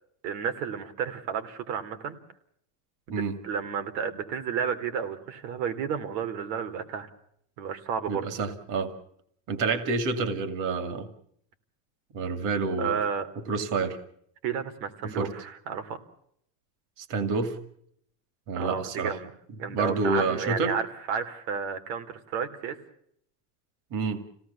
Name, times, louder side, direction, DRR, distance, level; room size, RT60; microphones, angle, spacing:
voice 1, 0.2-2.2 3.1-7.1 7.6-8.2 12.8-13.3 14.4-16.0 18.6-19.3 19.6-22.8, right 7 dB, 85° right, 8 dB, 3.3 m, -32 dB
voice 2, 8.1-8.9 9.5-11.1 12.1-13.0 13.5-14.0 15.0-15.3 17.0-17.6 18.5-19.2 19.7-20.7 23.9-24.2, right 4 dB, 40° right, 10 dB, 2.4 m, -28 dB
27.5 x 17.5 x 7.1 m, 0.70 s
cardioid pair, 170°, 48 cm